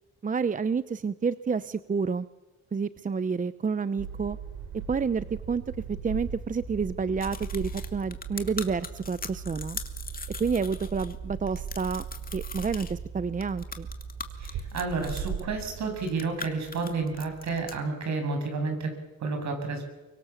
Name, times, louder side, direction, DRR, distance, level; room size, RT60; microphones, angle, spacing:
voice 1, 0.2-2.3 2.7-4.4 4.9-5.6 5.9-9.8 10.4-12.0 12.3-13.9, right 5 dB, 25° right, 14 dB, 0.8 m, -29 dB
sound 1, 4.0-17.8, right 6 dB, 80° right, 3.5 m, -39 dB
sound 2, 7.2-11.1 11.5-12.9 13.4-15.4 15.9-17.8, left 4 dB, 30° left, 2.5 m, -40 dB
voice 2, 14.4-19.8, right 4 dB, 65° right, 5 dB, 7.6 m, -31 dB
24.5 x 24.0 x 7.3 m, 1.1 s
cardioid pair, 90°, 30 cm